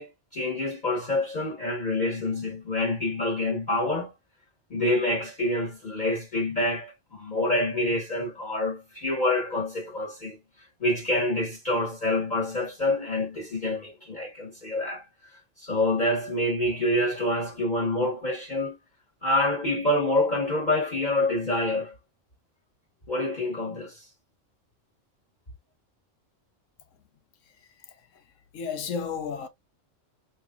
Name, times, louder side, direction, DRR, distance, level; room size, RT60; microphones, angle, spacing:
voice 1, 0.0-4.1 4.7-10.4 10.8-15.0 15.6-18.7 19.2-21.9 23.1-24.0, left 1 dB, 35° left, 1.3 m, -27 dB
voice 2, 27.9-28.2 28.5-29.5, left 6 dB, 80° left, 1.1 m, -33 dB
4.1 x 3.2 x 2.3 m
omnidirectional pair, 1.3 m